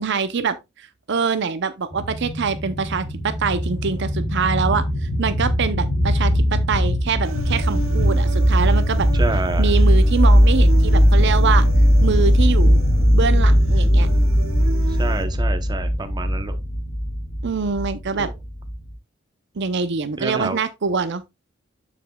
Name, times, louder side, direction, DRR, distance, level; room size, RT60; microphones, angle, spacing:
voice 1, 0.0-9.1 9.6-11.6 12.0-12.8 13.1-14.1 17.4-18.3 19.6-21.2, right 5 dB, 60° right, 0.6 m, -24 dB
sound 1, 1.9-18.9, equal, 60° left, 3.4 m, -18 dB
Human voice, 7.2-15.2, right 2 dB, 90° right, 1.5 m, -35 dB
voice 2, 9.1-9.8 15.0-16.6 18.2-18.3 20.2-20.6, right 2 dB, 20° right, 0.8 m, -28 dB
8.1 x 6.9 x 2.3 m
head